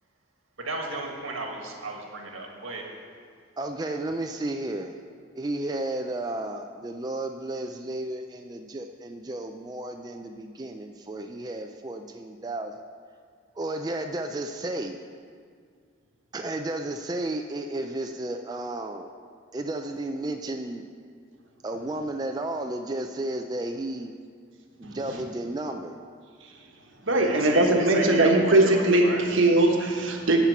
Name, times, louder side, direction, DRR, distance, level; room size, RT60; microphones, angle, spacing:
voice 1, 0.6-2.9 27.1-29.2, right 2 dB, 90° right, 1 dB, 1.7 m, -34 dB
voice 2, 3.6-4.9 5.4-12.7 13.6-15.0 16.3-19.1 19.5-20.8 21.6-24.1 24.8-26.0, right 1 dB, 20° right, 5 dB, 0.3 m, -33 dB
voice 3, 27.0-30.4, right 2 dB, 70° right, 2 dB, 1.2 m, -20 dB
11.5 x 4.5 x 8.1 m, 2.1 s
head